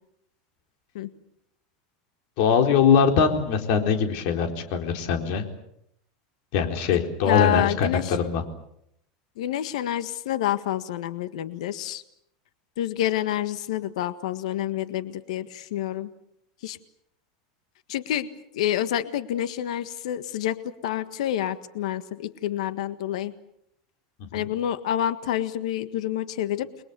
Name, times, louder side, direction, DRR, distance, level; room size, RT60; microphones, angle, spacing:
voice 1, 2.4-5.4 6.5-8.4 24.3-24.5, left 6 dB, 50° left, 5 dB, 4.1 m, -22 dB
voice 2, 7.2-8.2 9.4-12.0 12.8-16.1 16.6-16.8 17.9-18.3 18.5-20.6 20.8-23.3 24.3-26.7, left 11 dB, 80° left, 11 dB, 1.6 m, -28 dB
30.0 x 22.0 x 7.0 m, 0.74 s
supercardioid pair, 165°, 4 cm